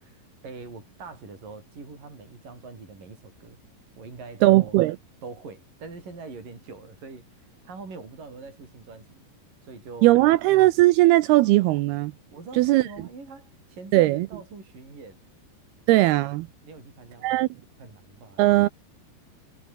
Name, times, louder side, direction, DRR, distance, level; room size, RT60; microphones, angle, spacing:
voice 1, 0.0-3.6 4.0-4.9 5.2-9.2 9.6-10.2 12.3-15.2 16.6-17.4 17.8-18.5, right 4 dB, 50° right, 9.7 m, -43 dB
voice 2, 4.4-5.0 10.0-12.1 12.6-12.8 13.9-14.3 15.9-16.5 17.2-17.5 18.4-18.7, right 18 dB, 85° right, 2.4 m, -18 dB
omnidirectional pair, 5.1 m